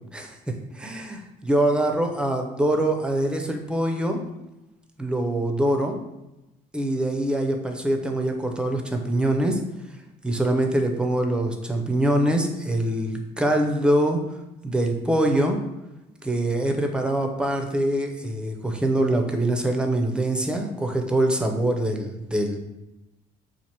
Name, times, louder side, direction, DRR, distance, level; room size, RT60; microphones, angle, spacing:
voice 1, 0.7-4.2 5.0-6.0 6.7-9.6 10.2-14.2 14.6-15.6 16.2-22.6, right 1 dB, 5° right, 3 dB, 0.5 m, -24 dB
4.6 x 2.5 x 2.9 m, 0.97 s
cardioid pair, 110°, 17 cm